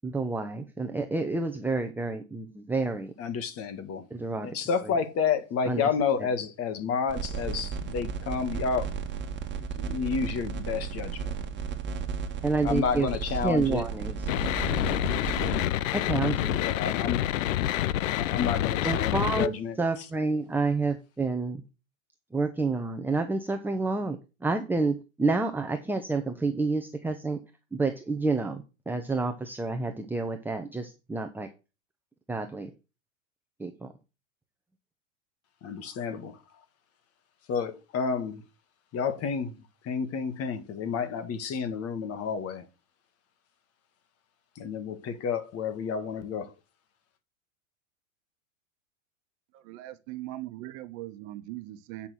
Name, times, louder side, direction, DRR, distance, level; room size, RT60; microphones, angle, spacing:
voice 1, 0.0-3.1 4.1-4.5 4.8-4.9 5.7-5.9 12.4-13.1 13.4-14.2 15.9-16.6 18.8-19.5 19.8-21.6 22.3-27.4 27.7-31.5 32.3-32.7 33.6-33.9, right 3 dB, 5° right, 0.9 m, -29 dB
voice 2, 3.2-4.1 4.4-8.9 9.6-11.3 12.6-13.9 14.8-15.0 16.5-17.3 18.1-19.8 35.6-36.4 37.5-38.4 38.9-39.6 39.8-42.7 44.5-46.5, left 6 dB, 35° left, 1.7 m, -30 dB
sound 1, 7.1-15.6, right 6 dB, 30° right, 1.7 m, -34 dB
sound 2, 14.3-19.5, left 13 dB, 75° left, 0.6 m, -27 dB
voice 3, 49.7-52.1, right 16 dB, 50° right, 1.3 m, -40 dB
8.8 x 5.9 x 6.4 m
hypercardioid pair, 110°, 39 cm